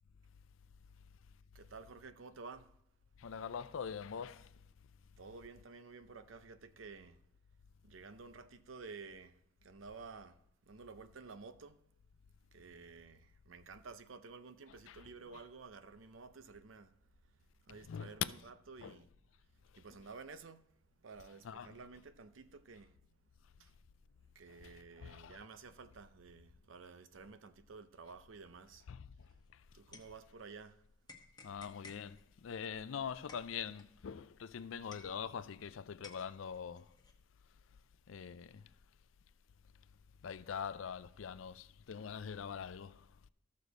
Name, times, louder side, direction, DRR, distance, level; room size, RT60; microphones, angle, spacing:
voice 1, 1.5-2.7 5.2-7.2 7.8-11.8 12.5-17.0 17.7-19.1 19.8-20.7 21.0-23.0 23.6-23.7 24.3-28.8 29.7-30.8, right 4 dB, 90° right, 0.6 m, -52 dB
voice 2, 3.2-4.5 14.7-15.4 17.7-18.3 18.8-19.0 19.7-19.8 21.4-21.8 24.5-25.4 28.9-29.6 31.4-36.9 38.1-38.7 40.2-43.1, left 7 dB, 85° left, 0.4 m, -44 dB
sound 1, 29.2-30.7 31.1-35.7 36.0-37.1, left 3 dB, 20° left, 1.1 m, -58 dB
14.0 x 6.5 x 4.0 m
head